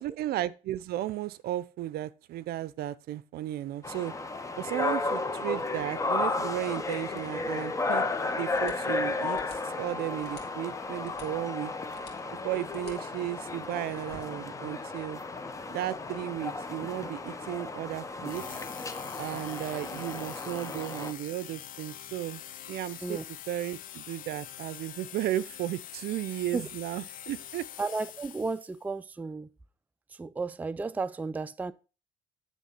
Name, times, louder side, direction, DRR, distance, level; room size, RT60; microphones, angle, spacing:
voice 1, 0.0-4.1 4.6-8.0 8.4-11.7 12.3-15.2 15.7-18.6 19.2-22.4 22.7-23.2 23.5-27.7, right 14 dB, 70° right, 0.5 m, -34 dB
sound 1, 3.8-21.1, left 3 dB, 20° left, 0.8 m, -34 dB
sound 2, 5.6-18.4, left 5 dB, 80° left, 2.1 m, -55 dB
sound 3, 18.2-28.8, left 11 dB, 55° left, 0.5 m, -45 dB
voice 2, 27.8-29.5 30.1-31.7, right 4 dB, 10° right, 0.3 m, -33 dB
10.0 x 3.6 x 5.5 m
cardioid pair, 110°, 17 cm